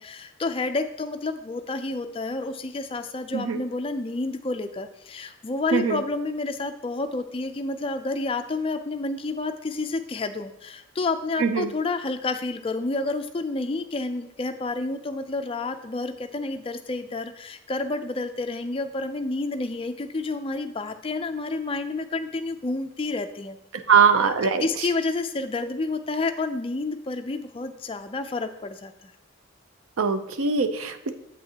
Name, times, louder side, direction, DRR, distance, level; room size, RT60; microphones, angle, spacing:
voice 1, 0.0-23.6 24.6-29.1, left 3 dB, 25° left, 8 dB, 0.4 m, -29 dB
voice 2, 11.4-11.7 23.9-24.9 30.0-31.1, right 6 dB, 90° right, 9 dB, 0.6 m, -22 dB
7.9 x 6.1 x 2.8 m, 0.84 s
head